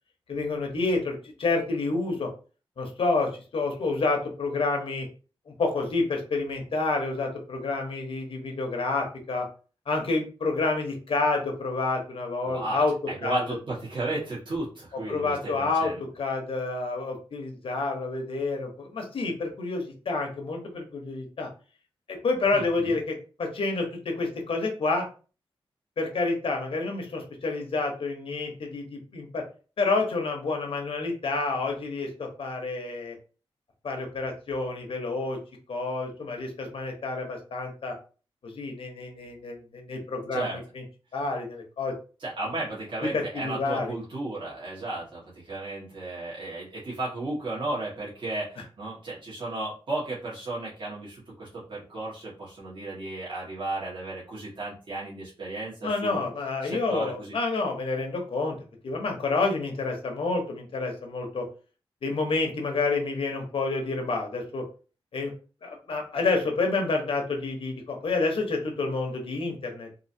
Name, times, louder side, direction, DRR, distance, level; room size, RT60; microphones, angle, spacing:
voice 1, 0.3-2.3 2.8-5.1 5.5-9.5 9.9-12.9 13.2-13.4 15.1-21.5 22.1-25.1 26.0-29.4 29.8-33.2 33.8-35.4 35.7-38.0 38.4-40.8 41.1-41.9 43.1-43.9 55.8-58.6 58.8-61.4 62.0-64.6 65.1-65.3 65.6-69.9, left 3 dB, 70° left, 2 dB, 1.1 m, -29 dB
voice 2, 12.4-16.0 22.5-22.9 40.3-40.6 42.2-56.3 56.6-57.4, right 2 dB, 55° right, -7 dB, 1.6 m, -34 dB
3.8 x 2.7 x 2.8 m, 0.36 s
wide cardioid pair, 115°, 10 cm